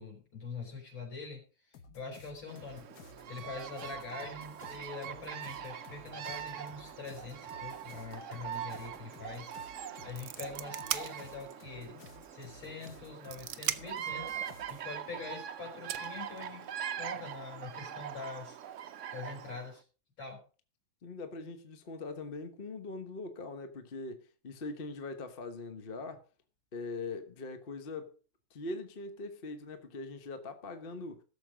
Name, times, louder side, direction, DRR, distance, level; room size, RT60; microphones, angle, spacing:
voice 1, 0.0-1.4 1.9-2.9 3.3-9.5 10.0-12.0 12.3-14.4 14.7-18.6 19.1-19.8 20.2-20.4, left 4 dB, 75° left, 5.7 m, -44 dB
sound 1, 1.7-14.8, left 5 dB, 55° left, 1.6 m, -55 dB
Bird vocalization bird call bird song, 2.5-19.7, right 9 dB, 70° right, 0.7 m, -43 dB
sound 2, 9.3-9.5 9.8-11.6 12.1-12.2 12.9-14.1 15.3-15.4 15.9-16.9, right 11 dB, 85° right, 1.6 m, -38 dB
voice 2, 21.0-26.2 26.7-28.1 28.5-31.2, left 3 dB, 35° left, 1.0 m, -42 dB
16.0 x 7.0 x 5.0 m
omnidirectional pair, 2.2 m